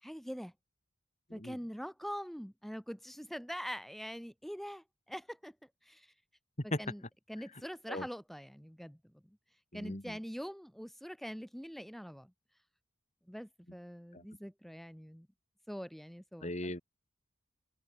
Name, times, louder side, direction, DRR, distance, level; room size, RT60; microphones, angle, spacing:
voice 1, 0.0-0.5 1.3-5.5 5.9-6.1 6.6-7.0 7.3-9.0 9.7-12.3 13.3-15.3 15.7-16.7, equal, ahead, 4.3 m, -44 dB
voice 2, 9.7-10.2 14.1-14.2 16.4-16.8, left 1 dB, 35° left, 3.7 m, -38 dB
head